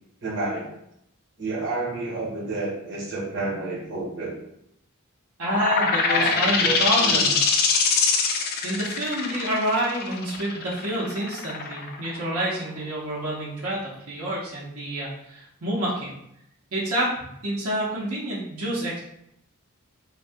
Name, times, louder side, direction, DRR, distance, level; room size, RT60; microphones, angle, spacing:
voice 1, 0.2-0.7 1.4-4.3 6.1-7.4, right 2 dB, 55° right, -3 dB, 1.0 m, -30 dB
sound 1, 5.4-12.8, left 5 dB, 45° left, 0.4 m, -23 dB
voice 2, 5.4-7.3 8.6-16.1 16.7-19.0, right 1 dB, 80° right, -6 dB, 0.8 m, -28 dB
2.6 x 2.3 x 3.4 m, 0.77 s
head